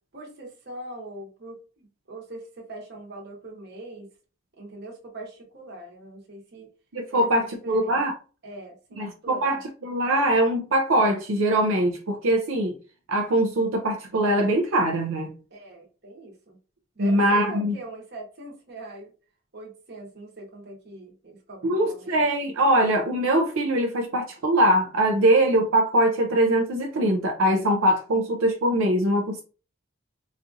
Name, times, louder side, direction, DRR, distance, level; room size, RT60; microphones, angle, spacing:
voice 1, 0.1-4.1 4.6-6.7 7.1-8.0 8.4-9.6 15.5-16.6 16.9-19.1 19.5-22.2, right 2 dB, 50° right, 1.0 m, -42 dB
voice 2, 6.9-8.1 9.0-12.7 13.1-15.3 17.0-17.7 21.6-29.4, right 1 dB, 75° right, 0.5 m, -22 dB
4.1 x 2.4 x 2.7 m
head